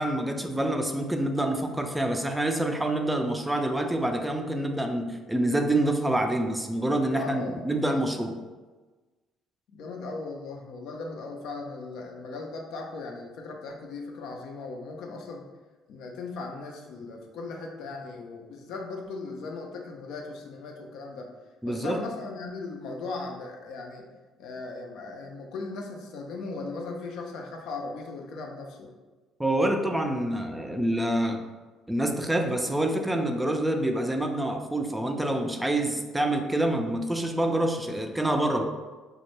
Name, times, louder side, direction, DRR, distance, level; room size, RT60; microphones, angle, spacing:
voice 1, 0.0-8.4 21.6-22.0 29.4-31.4 31.9-38.6, right 1 dB, 10° right, 4 dB, 0.3 m, -27 dB
voice 2, 7.1-7.6 9.7-15.5 15.9-21.3 21.7-24.1 24.4-28.9, left 3 dB, 70° left, 1 dB, 0.3 m, -38 dB
2.1 x 2.0 x 3.0 m, 1.3 s
hypercardioid pair, 55°, 0 cm